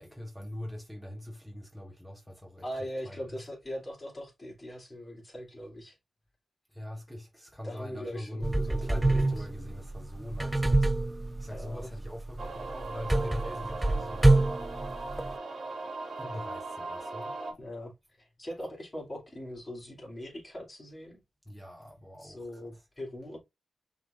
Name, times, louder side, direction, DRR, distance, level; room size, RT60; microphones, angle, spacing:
voice 1, 0.0-2.6 3.0-3.4 6.7-10.9 11.2-14.4 16.2-17.4 21.5-22.4, left 1 dB, 5° left, 1.2 m, -42 dB
voice 2, 2.6-6.0 7.6-9.5 11.5-11.9 17.6-17.9 18.2-21.2 22.2-23.4, equal, 30° left, 2.9 m, -41 dB
sound 1, 8.4-15.3, right 2 dB, 15° right, 0.5 m, -27 dB
sound 2, 12.4-17.5, right 3 dB, 60° right, 1.4 m, -39 dB
5.8 x 3.6 x 2.5 m
cardioid pair, 55°, 0 cm